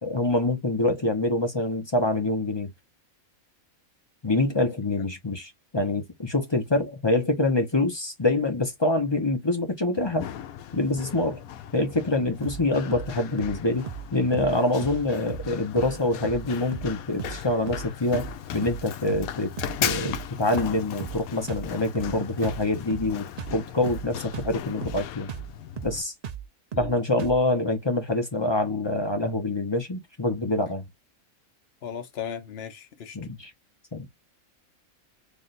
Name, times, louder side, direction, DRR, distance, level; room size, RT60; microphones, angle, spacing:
voice 1, 0.0-2.7 4.2-10.3 10.7-11.4 11.7-18.3 18.5-19.5 19.8-25.3 25.8-26.1 26.8-30.8 33.1-33.5 33.9-34.1, left 2 dB, 25° left, 0.7 m, -25 dB
Run, 10.0-26.0, left 10 dB, 80° left, 1.0 m, -37 dB
sound 1, 12.4-12.6 12.9-13.1 13.4-13.6 13.9-14.1 14.3-14.5 14.8-15.0 15.3-15.5 15.8-16.0 16.2-16.5 16.7-16.9 17.2-17.4 17.7-17.9 18.1-18.4 18.6-18.8 19.1-19.3 19.6-20.3 20.5-20.7 21.0-21.2 21.5-21.7 21.9-22.2 22.4-22.6 22.9-23.1 23.4-23.6 23.9-24.1 24.3-24.5 24.8-25.0 25.3-25.5 25.8-26.0 26.2-26.4 26.7-26.9 27.2-27.4, right 8 dB, 75° right, 0.3 m, -36 dB
voice 2, 31.8-33.2, left 8 dB, 50° left, 1.0 m, -37 dB
3.4 x 2.4 x 4.1 m
omnidirectional pair, 1.5 m